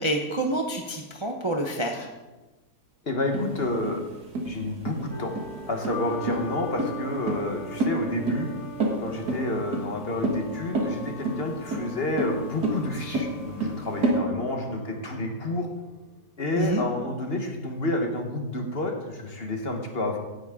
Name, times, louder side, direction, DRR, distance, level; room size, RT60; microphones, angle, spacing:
voice 1, 0.0-2.1 16.6-16.9, right 1 dB, 25° right, 2 dB, 0.8 m, -27 dB
voice 2, 3.1-4.0 4.4-5.3 5.7-8.5 9.0-15.7 16.4-20.2, left 2 dB, 40° left, 3 dB, 1.4 m, -29 dB
sound 1, 3.3-14.2, right 2 dB, 75° right, 2.3 m, -29 dB
sound 2, 5.1-16.1, left 1 dB, 20° left, 2.9 m, -41 dB
16.5 x 9.2 x 3.7 m, 1.1 s
omnidirectional pair, 1.7 m